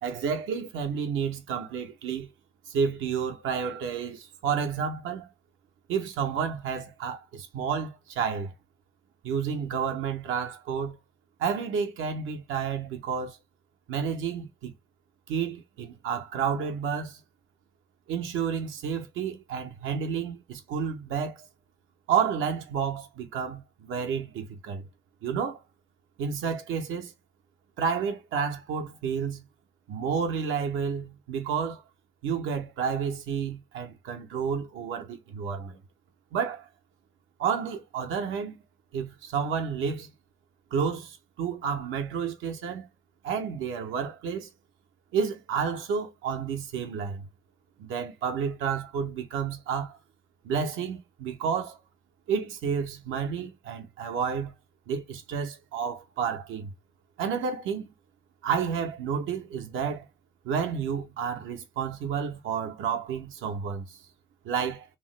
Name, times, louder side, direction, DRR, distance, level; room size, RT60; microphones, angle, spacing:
voice 1, 0.0-2.3 2.7-5.3 5.9-8.5 9.2-11.0 11.4-13.4 13.9-14.7 15.3-17.2 18.1-21.5 22.1-24.8 25.2-25.6 26.2-27.1 27.8-29.4 29.9-31.8 32.2-35.8 36.3-36.6 37.4-38.6 38.9-40.1 40.7-42.9 43.2-44.5 45.1-47.3 47.8-50.0 50.4-51.8 52.3-54.5 54.9-56.7 57.2-57.9 58.4-60.1 60.4-64.0 64.4-64.9, right 6 dB, 85° right, 0.8 m, -30 dB
3.0 x 2.1 x 3.1 m
cardioid pair, 90°, 20 cm